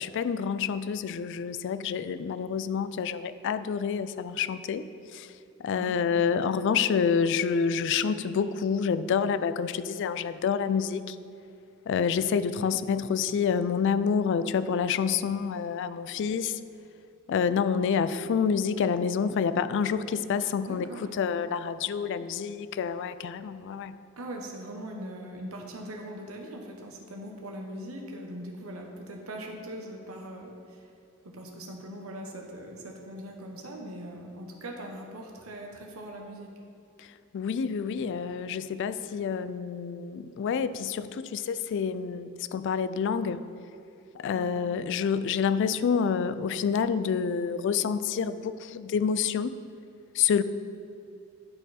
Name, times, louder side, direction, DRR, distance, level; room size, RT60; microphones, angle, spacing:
voice 1, 0.0-4.8 5.1-5.3 5.6-11.2 11.9-16.6 17.3-24.0 37.0-37.1 37.3-43.4 44.1-49.5 50.1-50.4, left 6 dB, 60° left, 14 dB, 0.3 m, -28 dB
voice 2, 20.6-21.2 24.2-30.9 31.2-36.5 44.3-44.5, right 1 dB, 85° right, 1 dB, 1.0 m, -41 dB
10.5 x 4.5 x 4.1 m, 2.6 s
head